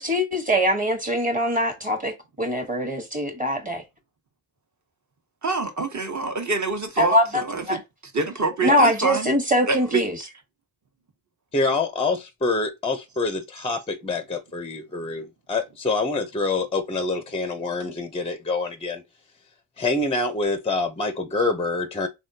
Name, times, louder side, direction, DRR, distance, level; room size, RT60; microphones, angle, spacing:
voice 1, 0.0-3.8 7.0-7.8 8.6-10.2, equal, 15° right, 1.2 m, -23 dB
voice 2, 5.4-7.8 8.1-9.3 9.7-10.0, right 3 dB, 35° right, 1.1 m, -26 dB
voice 3, 11.5-19.0 19.8-22.1, left 3 dB, 10° left, 0.5 m, -26 dB
3.5 x 2.3 x 2.7 m
supercardioid pair, 45°, 49 cm